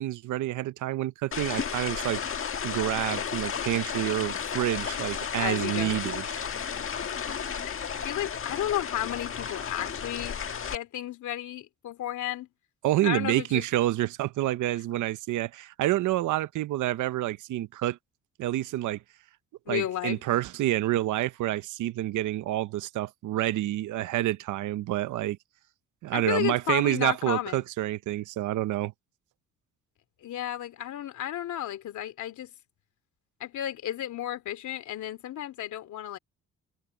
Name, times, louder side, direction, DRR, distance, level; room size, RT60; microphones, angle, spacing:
voice 1, 0.0-2.2 2.6-6.2 12.8-18.0 18.4-19.0 19.7-25.4 26.0-28.9, right 14 dB, 80° right, 0.9 m, -28 dB
sound 1, 1.3-10.7, left 7 dB, 45° left, 1.6 m, -33 dB
voice 2, 5.3-6.0 7.6-10.4 10.7-12.5 13.0-13.7 19.7-20.2 26.1-27.6 30.2-32.5 33.4-36.2, left 11 dB, 75° left, 3.0 m, -33 dB
cardioid pair, 90°, 30 cm